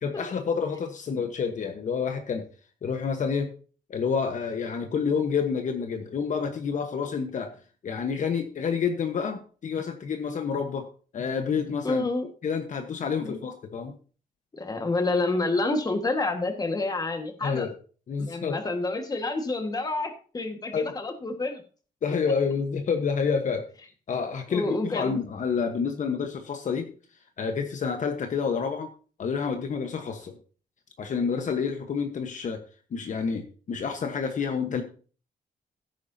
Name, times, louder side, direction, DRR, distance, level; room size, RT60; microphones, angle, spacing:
voice 1, 0.0-2.4 2.8-3.5 3.9-7.5 7.8-10.9 11.1-12.1 12.4-13.9 17.4-17.7 18.1-18.6 20.7-20.9 22.0-23.7 24.1-26.9 27.4-28.9 29.2-30.4 31.0-32.6 32.9-34.8, left 6 dB, 55° left, 6 dB, 1.2 m, -28 dB
voice 2, 11.8-12.3 13.2-13.4 14.5-17.7 18.2-21.6 24.5-25.2, left 2 dB, 25° left, 6 dB, 1.6 m, -28 dB
16.0 x 9.4 x 2.8 m, 0.39 s
wide cardioid pair, 145°, 16 cm